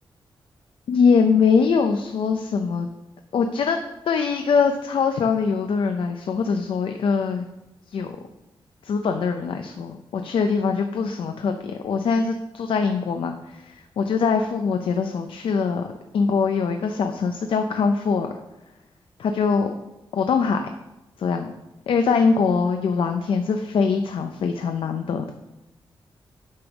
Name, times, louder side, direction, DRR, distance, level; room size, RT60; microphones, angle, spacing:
voice 1, 0.9-2.9 3.3-3.8 4.1-7.5 7.9-8.2 8.8-15.9 16.1-18.3 19.2-19.7 20.1-20.7 21.2-21.5 21.9-25.3, left 5 dB, 75° left, 6 dB, 0.6 m, -22 dB
8.7 x 5.3 x 5.9 m, 0.97 s
wide cardioid pair, 120°, 9 cm